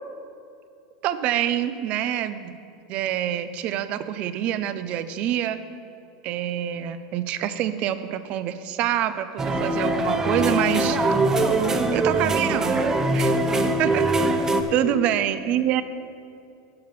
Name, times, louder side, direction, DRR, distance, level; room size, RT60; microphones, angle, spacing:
voice 1, 1.0-2.6 2.9-5.6 6.2-11.0 11.9-13.4 13.8-14.1 14.7-15.8, right 11 dB, 50° right, 13 dB, 0.6 m, -26 dB
sound 1, 9.4-14.6, right 2 dB, 20° right, 0.8 m, -22 dB
11.5 x 5.9 x 6.7 m, 2.5 s
supercardioid pair, 120°, 3 cm